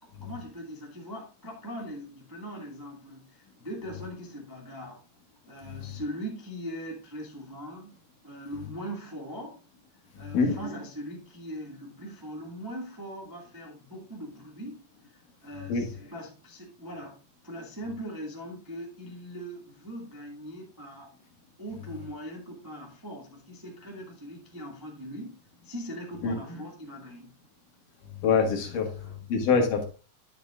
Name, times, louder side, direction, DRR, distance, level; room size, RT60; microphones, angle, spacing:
voice 1, 0.0-5.0 5.5-7.9 8.2-9.6 10.2-17.2 17.4-21.1 21.6-25.4 25.6-27.3 28.9-29.2, equal, 10° right, -2 dB, 1.3 m, -40 dB
voice 2, 10.2-10.6 15.7-15.9 26.2-26.3 28.2-28.9 29.3-29.9, left 5 dB, 75° left, 3 dB, 3.2 m, -25 dB
10.5 x 8.1 x 2.5 m, 0.35 s
omnidirectional pair, 3.8 m